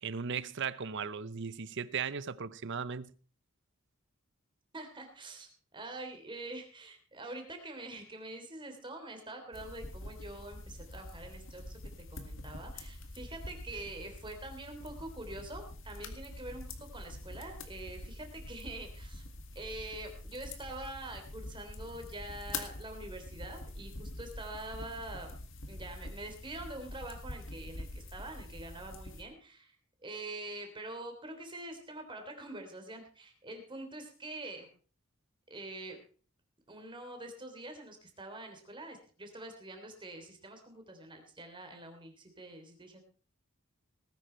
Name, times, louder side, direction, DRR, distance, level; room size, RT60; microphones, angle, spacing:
voice 1, 0.0-3.1, right 6 dB, 55° right, 0.7 m, -37 dB
voice 2, 4.7-11.8 12.1-16.7 16.9-19.2 19.5-25.4 25.7-29.7 30.0-34.7 35.5-36.0 36.7-43.0, right 2 dB, 25° right, 3.3 m, -45 dB
sound 1, 9.5-29.2, left 2 dB, 60° left, 2.1 m, -45 dB
19.0 x 10.0 x 4.5 m
head